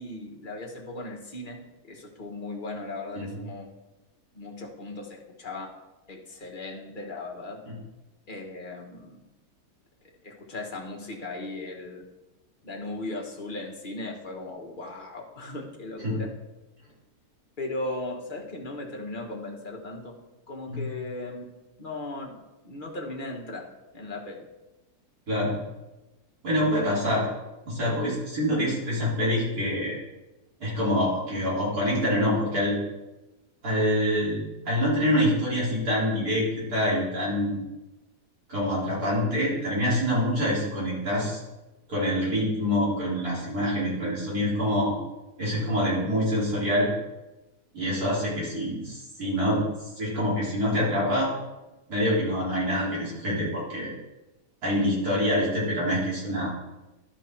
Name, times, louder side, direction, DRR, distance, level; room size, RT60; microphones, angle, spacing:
voice 1, 0.0-3.7 4.3-5.7 6.1-7.6 8.3-9.2 10.2-12.0 12.6-16.3 17.6-20.1 20.5-21.4 21.8-22.4 22.6-23.6 23.9-24.4, left 2 dB, 30° left, -1 dB, 1.4 m, -37 dB
voice 2, 26.4-27.3 27.7-30.0 30.6-32.8 33.6-37.6 38.5-41.4 41.9-44.9 45.4-46.9 47.7-49.6 50.0-51.3 51.9-53.9 54.6-56.5, equal, 65° right, -7 dB, 4.0 m, -26 dB
12.0 x 5.3 x 4.5 m, 1.0 s
omnidirectional pair, 1.7 m